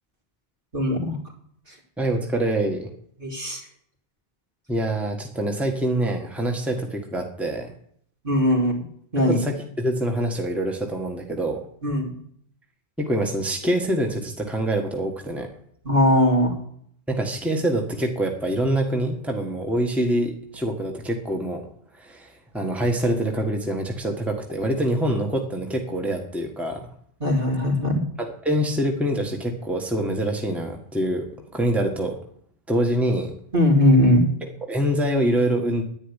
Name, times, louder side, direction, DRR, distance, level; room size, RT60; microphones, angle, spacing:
voice 1, 0.7-1.2 1.7-1.8 3.2-3.7 8.2-8.9 9.1-9.4 11.8-12.1 15.8-16.6 27.2-28.0 33.5-34.3, left 1 dB, 55° right, -1 dB, 3.4 m, -20 dB
voice 2, 2.0-2.9 4.7-7.7 9.3-9.4 9.8-11.6 13.0-15.5 17.1-21.7 22.0-26.9 28.4-32.2 32.7-33.3 34.7-35.8, right 1 dB, ahead, 2 dB, 1.6 m, -25 dB
10.5 x 9.7 x 10.0 m, 0.65 s
omnidirectional pair, 1.1 m